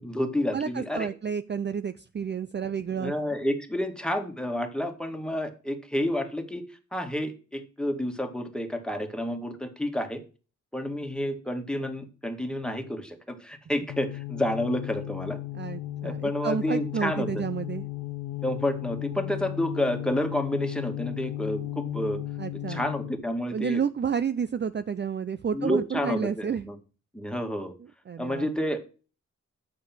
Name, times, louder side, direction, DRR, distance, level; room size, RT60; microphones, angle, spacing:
voice 1, 0.0-1.1 3.0-6.6 6.9-10.2 10.7-15.4 16.0-17.4 18.4-22.2 22.7-23.8 25.5-26.8 27.1-27.7 28.2-28.9, left 1 dB, 5° left, 5 dB, 2.1 m, -30 dB
voice 2, 0.5-3.1 15.5-17.9 22.4-22.8 23.5-26.6 28.1-28.5, right 7 dB, 35° right, 13 dB, 0.5 m, -30 dB
sound 1, 13.9-23.3, left 15 dB, 85° left, 0.8 m, -35 dB
8.4 x 6.8 x 6.0 m, 0.35 s
cardioid pair, 75°, 30 cm